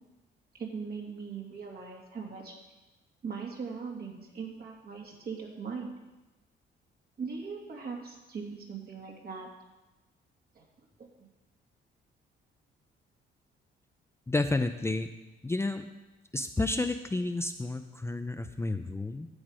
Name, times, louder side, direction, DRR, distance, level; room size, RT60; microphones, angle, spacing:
voice 1, 0.5-2.5 3.2-5.9 7.2-9.5 10.5-10.6 11.0-11.3, right 5 dB, 50° right, 0 dB, 2.5 m, -40 dB
voice 2, 14.3-15.1 15.4-15.8 16.3-19.3, left 2 dB, 15° left, 7 dB, 0.6 m, -31 dB
11.5 x 7.9 x 5.1 m, 1.1 s
cardioid pair, 90°, 20 cm